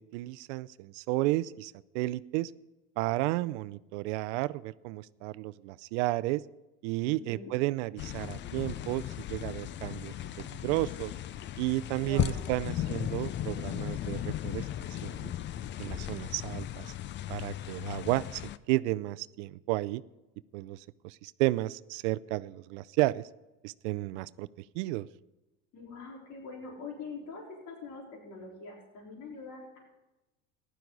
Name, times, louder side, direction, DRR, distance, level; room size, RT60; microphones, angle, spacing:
voice 1, 0.0-2.5 3.0-6.4 6.8-11.1 11.6-14.6 14.9-15.3 15.8-16.9 17.3-18.4 18.7-20.0 20.5-23.2 23.6-24.5 24.7-25.1, right 19 dB, 75° right, 17 dB, 0.6 m, -32 dB
voice 2, 7.0-7.5 12.0-12.5 25.7-29.8, left 4 dB, 55° left, -2 dB, 4.1 m, -44 dB
sound 1, 8.0-18.6, left 12 dB, 30° left, 0.4 m, -36 dB
15.0 x 11.5 x 3.9 m, 1.0 s
supercardioid pair, 105°, 36 cm